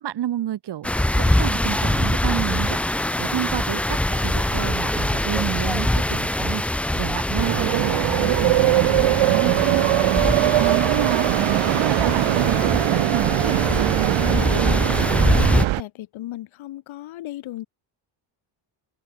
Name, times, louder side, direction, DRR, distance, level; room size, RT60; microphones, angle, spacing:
voice 1, 0.0-9.9 10.2-11.3 11.6-14.9, right 12 dB, 60° right, 2.2 m, -30 dB
sound 1, 0.8-15.6, left 1 dB, 5° left, 0.3 m, -23 dB
sound 2, 7.4-15.8, right 16 dB, 85° right, 1.3 m, -21 dB
voice 2, 15.8-17.7, left 15 dB, 85° left, 2.3 m, -35 dB
open air
cardioid pair, 160°, 46 cm